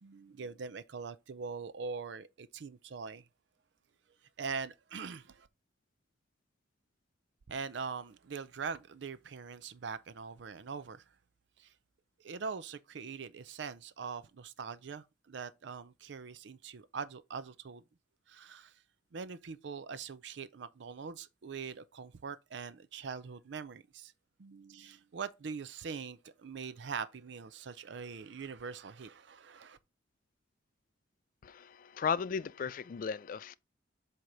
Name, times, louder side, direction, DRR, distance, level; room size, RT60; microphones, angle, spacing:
voice 1, 0.0-3.3 4.4-5.5 7.5-11.0 11.6-11.7 12.2-17.8 18.3-18.8 19.1-24.1 24.4-29.8, right 5 dB, 70° right, 0.5 m, -42 dB
voice 2, 31.4-33.6, left 6 dB, 45° left, 0.3 m, -35 dB
7.8 x 2.9 x 5.1 m
head